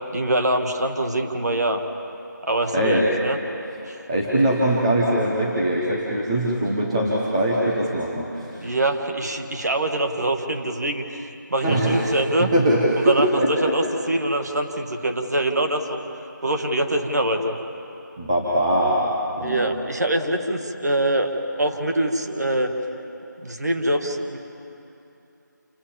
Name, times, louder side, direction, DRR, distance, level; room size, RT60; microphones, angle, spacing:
voice 1, 0.1-1.8 2.4-3.4 3.8-4.0 8.6-12.5 13.0-16.0 16.4-17.6 19.4-21.3 21.6-22.7 23.4-24.4, right 1 dB, 55° right, 4 dB, 2.1 m, -24 dB
voice 2, 2.7-3.1 3.7-8.7 11.6-13.7 18.2-19.0 19.4-19.7, right 1 dB, 15° right, -5 dB, 1.4 m, -22 dB
28.5 x 12.5 x 7.4 m, 2.9 s
figure-of-eight pair, 170°, 10 cm